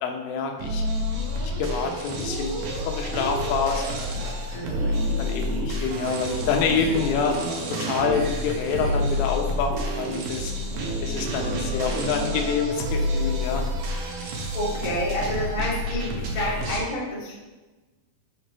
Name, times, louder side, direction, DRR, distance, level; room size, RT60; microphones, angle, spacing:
voice 1, 0.0-0.8 1.4-4.0 4.5-7.4 7.8-10.5 11.0-13.6, left 5 dB, 85° left, 3 dB, 3.6 m, -27 dB
sound 1, 0.6-16.8, equal, 90° right, 1.8 m, -28 dB
voice 2, 4.5-5.0 14.5-17.3, equal, 60° left, -7 dB, 0.4 m, -29 dB
8.2 x 5.2 x 5.5 m, 1.2 s
omnidirectional pair, 5.7 m